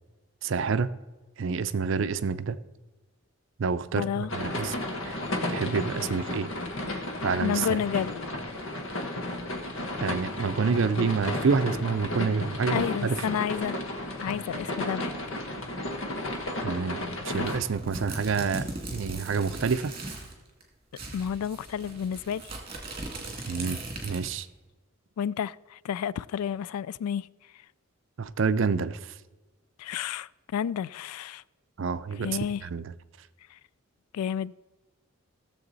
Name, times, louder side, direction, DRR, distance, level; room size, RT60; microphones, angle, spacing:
voice 1, 0.4-0.9 1.4-2.6 3.6-4.8 5.0-5.2 5.5-6.5 7.2-7.8 10.0-13.2 16.6-19.9 23.5-24.5 28.2-29.1 31.8-32.9, right 5 dB, 55° right, 0.5 m, -28 dB
voice 2, 3.9-4.3 7.4-8.2 12.7-13.8 14.2-15.4 21.1-22.5 23.4-23.5 25.2-27.3 29.8-31.4 32.2-32.6 33.5-33.6 34.1-34.5, left 8 dB, 90° left, 0.3 m, -31 dB
sound 1, 4.3-17.6, left 1 dB, 60° left, 1.2 m, -33 dB
sound 2, 17.3-20.3 20.6-20.7 20.9-24.5, right 2 dB, 25° right, 2.2 m, -39 dB
16.0 x 7.1 x 4.0 m
head